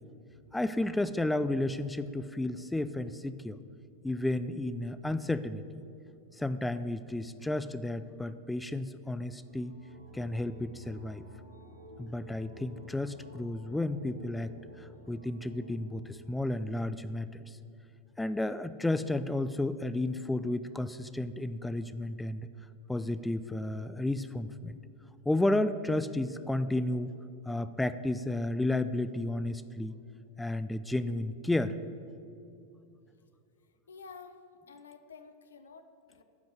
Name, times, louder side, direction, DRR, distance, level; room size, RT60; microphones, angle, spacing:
voice 1, 0.5-3.6 4.0-5.7 6.4-9.8 10.1-11.3 12.0-14.5 14.8-17.6 18.2-22.5 22.9-24.8 25.3-27.1 27.5-29.9 30.4-31.8, left 2 dB, 5° left, 13 dB, 0.3 m, -32 dB
sound 1, 9.4-17.0, equal, 80° right, 1.0 m, -53 dB
voice 2, 33.9-36.2, left 5 dB, 70° left, 8 dB, 0.5 m, -51 dB
9.6 x 5.3 x 8.0 m, 2.6 s
figure-of-eight pair, 90°, 0 cm